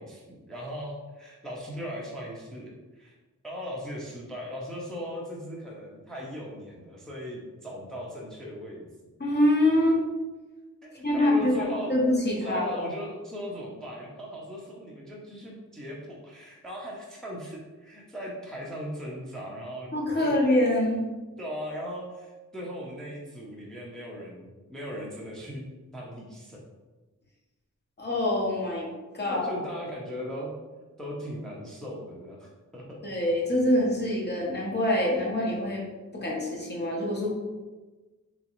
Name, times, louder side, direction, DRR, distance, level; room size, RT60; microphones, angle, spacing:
voice 1, 0.0-3.1 3.4-8.8 10.8-11.9 12.4-19.9 20.2-20.3 21.4-25.6 25.9-26.6 29.2-30.5 31.0-33.0, equal, ahead, -3 dB, 0.5 m, -38 dB
voice 2, 9.2-10.0 11.0-12.8 19.9-21.0 28.0-28.9 29.1-29.6 33.0-35.8 36.1-37.3, left 1 dB, 35° left, -3 dB, 0.9 m, -25 dB
3.6 x 3.0 x 2.9 m, 1.2 s
wide cardioid pair, 130°, 31 cm